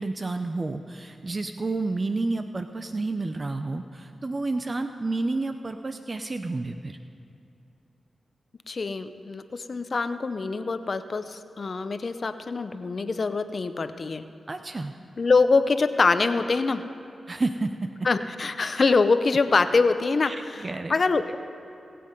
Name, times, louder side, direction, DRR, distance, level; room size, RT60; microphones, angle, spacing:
voice 1, 0.0-7.0 14.5-14.9 17.3-17.9 20.2-21.0, right 3 dB, 40° right, 8 dB, 0.6 m, -30 dB
voice 2, 8.7-14.2 15.2-16.8 18.0-21.4, left 4 dB, 55° left, 11 dB, 0.7 m, -24 dB
23.0 x 7.7 x 5.3 m, 2.8 s
cardioid pair, 45°, 0 cm